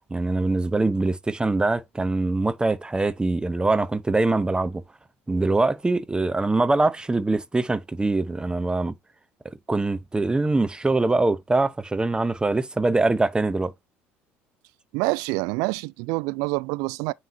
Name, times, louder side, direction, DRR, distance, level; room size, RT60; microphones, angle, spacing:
voice 1, 0.1-4.8 5.3-8.9 9.4-13.7, right 2 dB, 15° right, 0.8 m, -23 dB
voice 2, 14.9-17.1, right 25 dB, 60° right, 0.3 m, -26 dB
9.1 x 3.2 x 3.5 m
figure-of-eight pair, 60°, 7 cm